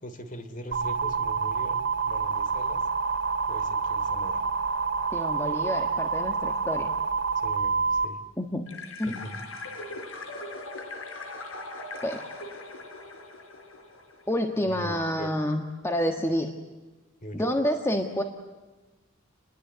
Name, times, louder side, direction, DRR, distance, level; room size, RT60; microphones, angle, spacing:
voice 1, 0.0-2.9 3.5-4.4 7.3-8.2 9.0-9.4 9.8-9.9 14.7-15.3 17.2-17.5, equal, 40° left, 9 dB, 3.1 m, -41 dB
sound 1, 0.7-8.1, right 5 dB, 60° right, 2.9 m, -28 dB
voice 2, 5.1-6.9 8.4-8.7 9.0-9.2 12.0-12.2 14.3-16.5 17.3-18.2, equal, 15° left, 4 dB, 1.5 m, -28 dB
sound 2, 8.7-14.4, left 2 dB, 75° left, 4.4 m, -40 dB
29.5 x 21.5 x 8.1 m, 1.2 s
head